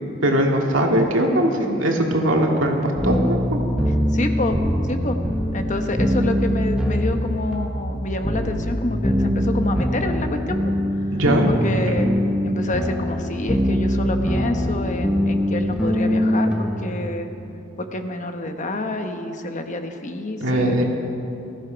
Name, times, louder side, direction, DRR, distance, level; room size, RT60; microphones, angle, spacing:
voice 1, 0.2-3.6 11.1-11.5 20.4-20.8, right 1 dB, 80° right, 0 dB, 2.2 m, -20 dB
sound 1, 3.0-17.1, equal, 5° right, 1.1 m, -23 dB
voice 2, 4.1-4.6 4.9-5.2 5.5-10.6 11.5-12.1 12.4-17.3 17.8-20.8, left 2 dB, 40° left, 6 dB, 1.1 m, -28 dB
19.5 x 14.5 x 5.1 m, 2.8 s
head